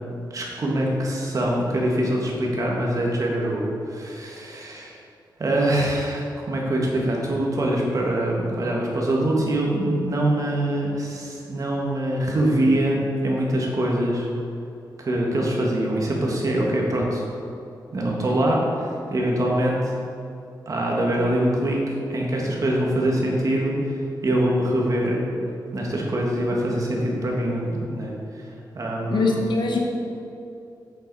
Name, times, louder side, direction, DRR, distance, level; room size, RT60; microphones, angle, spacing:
voice 1, 0.3-5.0 5.4-6.2 6.5-14.3 15.0-17.2 17.9-19.9 20.6-21.8 22.1-25.2 25.7-28.5 28.7-29.4, right 1 dB, 45° right, -2 dB, 1.6 m, -24 dB
voice 2, 29.1-29.8, left 3 dB, 85° left, 1 dB, 1.1 m, -22 dB
7.8 x 7.0 x 4.7 m, 2.7 s
wide cardioid pair, 145°, 8 cm